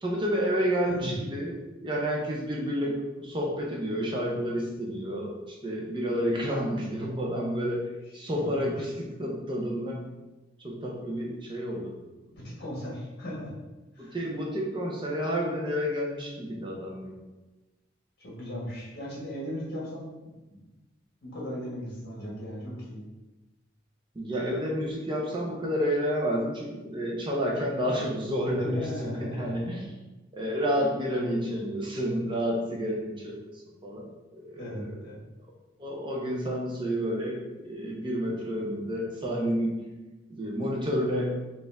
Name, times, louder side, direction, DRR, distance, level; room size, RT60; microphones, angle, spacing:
voice 1, 0.0-10.0 10.6-11.9 14.0-17.2 24.1-29.9 30.3-34.9 35.8-39.8 40.3-41.4, equal, 25° right, -2 dB, 0.6 m, -30 dB
voice 2, 8.3-8.7 12.3-13.5 13.9-14.2 18.2-20.6 21.2-23.0 28.6-29.4 34.6-35.3, equal, 55° left, -6 dB, 1.4 m, -37 dB
4.2 x 2.5 x 3.4 m, 1.1 s
head